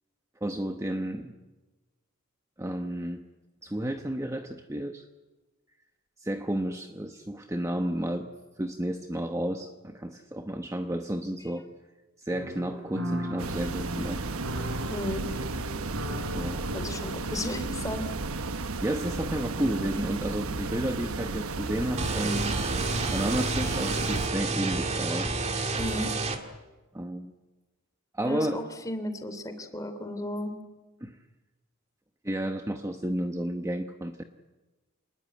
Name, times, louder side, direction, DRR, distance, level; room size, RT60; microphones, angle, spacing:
voice 1, 0.4-1.3 2.6-3.2 3.6-5.0 6.2-8.3 8.6-11.7 12.2-14.2 16.3-16.7 18.8-22.6 23.1-25.4 26.9-27.3 28.1-28.6 31.0-31.2 32.2-34.2, right 1 dB, 15° right, 5 dB, 1.0 m, -32 dB
sound 1, 12.3-18.0, equal, 70° right, 3.5 m, -37 dB
sound 2, 13.4-24.3, right 3 dB, 90° right, 1.2 m, -34 dB
voice 2, 14.9-15.2 16.7-18.1 25.8-26.1 28.2-30.5, left 1 dB, 15° left, 8 dB, 2.9 m, -34 dB
sound 3, 22.0-26.4, right 3 dB, 30° right, 2.1 m, -29 dB
27.5 x 20.0 x 9.3 m, 1.2 s
head